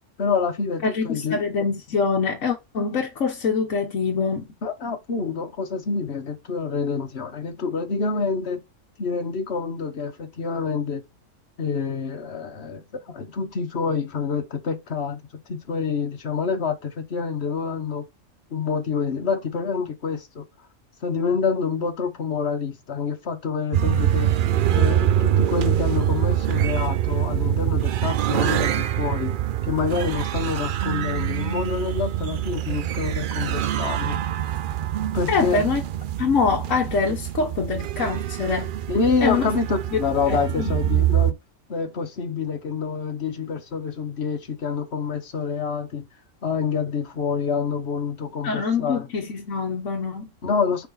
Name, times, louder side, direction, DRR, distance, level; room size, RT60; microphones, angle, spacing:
voice 1, 0.2-1.5 4.6-8.6 9.0-11.0 11.6-15.2 15.5-18.0 18.5-20.4 21.0-24.3 24.7-29.3 29.6-34.2 35.1-35.7 38.9-41.4 41.7-46.1 46.4-49.1 50.4-50.9, left 5 dB, 55° left, 1.5 m, -27 dB
voice 2, 0.8-4.5 35.3-35.8 36.2-38.7 39.2-39.5 40.3-41.0 48.4-50.3, left 5 dB, 70° left, 1.4 m, -24 dB
sound 1, 23.7-41.3, right 11 dB, 65° right, 0.5 m, -24 dB
6.4 x 4.8 x 3.9 m
omnidirectional pair, 1.4 m